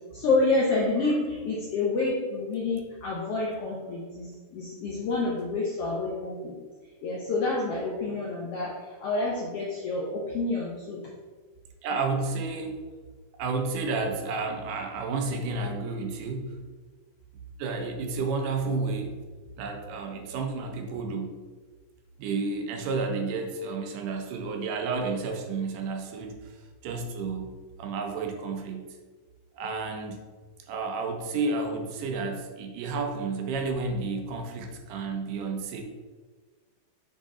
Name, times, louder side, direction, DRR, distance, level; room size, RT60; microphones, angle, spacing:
voice 1, 0.1-6.6 7.0-11.0, left 3 dB, 75° left, -4 dB, 1.4 m, -28 dB
voice 2, 11.8-12.8 13.4-16.6 17.6-19.2 19.6-21.4 22.2-27.5 27.8-28.8 29.5-30.2 30.7-35.8, right 4 dB, 80° right, 3 dB, 2.3 m, -31 dB
8.0 x 3.9 x 3.7 m, 1.4 s
omnidirectional pair, 3.8 m